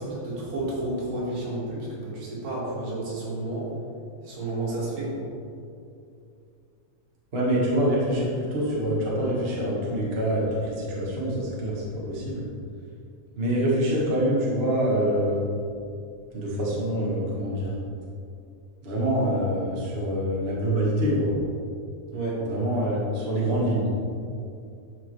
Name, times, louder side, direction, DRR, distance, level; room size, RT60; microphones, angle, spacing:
voice 1, 0.0-3.7 4.2-5.3 22.1-22.4, right 2 dB, 80° right, -6 dB, 3.6 m, -31 dB
voice 2, 7.3-12.4 13.4-15.5 16.3-17.7 18.8-21.4 22.4-23.9, equal, 40° right, -5 dB, 0.8 m, -25 dB
11.5 x 4.8 x 3.2 m, 2.5 s
omnidirectional pair, 3.8 m